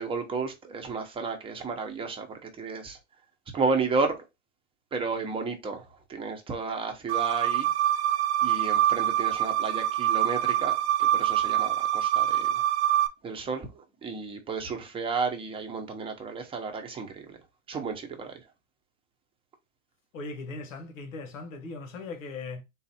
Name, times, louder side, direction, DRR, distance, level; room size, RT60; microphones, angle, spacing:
voice 1, 0.0-3.0 3.5-4.1 4.9-5.8 6.1-7.7 8.4-12.6 13.2-17.4 17.7-18.3, right 4 dB, 15° right, 0.7 m, -32 dB
sound 1, 7.1-13.1, right 12 dB, 55° right, 0.6 m, -25 dB
voice 2, 20.1-22.6, left 3 dB, 80° left, 1.3 m, -39 dB
3.9 x 2.5 x 4.1 m
supercardioid pair, 135°, 39 cm